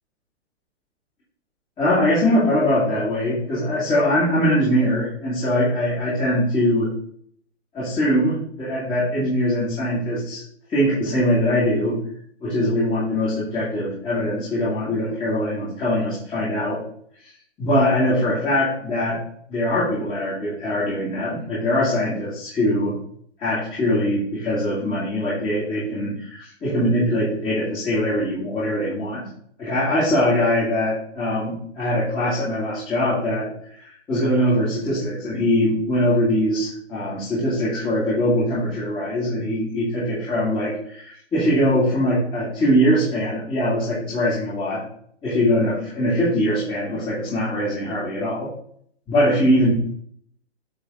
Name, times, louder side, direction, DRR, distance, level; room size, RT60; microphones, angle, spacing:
voice 1, 1.8-6.9 7.7-10.4 10.7-12.0 12.4-16.8 17.2-17.3 17.6-19.2 19.5-23.0 23.4-29.3 29.6-44.9 45.2-48.5 49.1-49.7, equal, 15° left, -10 dB, 2.4 m, -22 dB
8.6 x 4.0 x 3.8 m, 0.63 s
hypercardioid pair, 140°, 36 cm